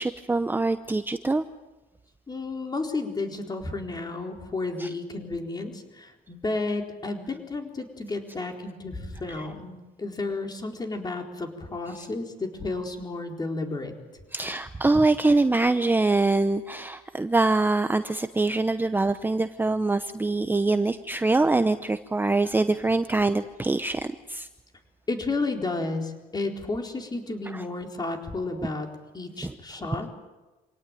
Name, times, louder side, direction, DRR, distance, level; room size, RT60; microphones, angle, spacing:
voice 1, 0.0-1.5 4.8-4.9 9.4-9.5 14.3-24.5 27.5-27.6 28.6-28.7 29.4-29.5, right 2 dB, 10° right, 10 dB, 0.8 m, -24 dB
voice 2, 2.3-13.9 25.1-28.9 29.1-30.1, left 3 dB, 25° left, 3 dB, 4.2 m, -32 dB
26.0 x 18.0 x 9.2 m, 1.1 s
cardioid pair, 110°, 17 cm